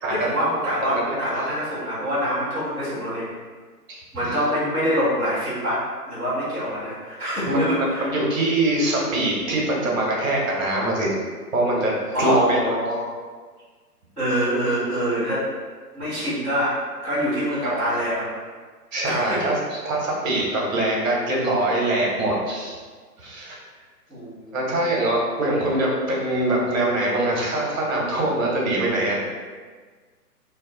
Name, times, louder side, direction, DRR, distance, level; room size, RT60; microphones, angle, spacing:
voice 1, 0.1-3.3 4.1-5.8 6.1-8.1 12.1-13.1 14.2-15.5 15.9-18.3 19.0-19.4 24.1-24.6, equal, 5° left, -23 dB, 0.7 m, -25 dB
voice 2, 3.9-4.3 7.4-11.2 11.5-12.6 17.6-17.9 18.9-22.8 23.2-23.6 24.5-29.2, right 1 dB, 55° right, -3 dB, 1.3 m, -23 dB
3.2 x 2.7 x 3.9 m, 1.5 s
hypercardioid pair, 155°, 48 cm